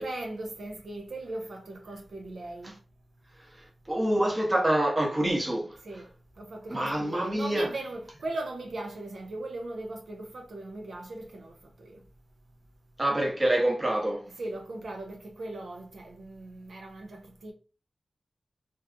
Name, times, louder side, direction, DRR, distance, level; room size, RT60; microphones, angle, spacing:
voice 1, 0.0-2.8 5.8-6.1 6.4-12.0 14.4-17.5, right 2 dB, 80° right, 0.5 m, -38 dB
voice 2, 3.4-5.8 6.7-7.7 13.0-14.3, right 1 dB, 25° right, 0.7 m, -26 dB
2.6 x 2.4 x 2.4 m
wide cardioid pair, 80°, 0 cm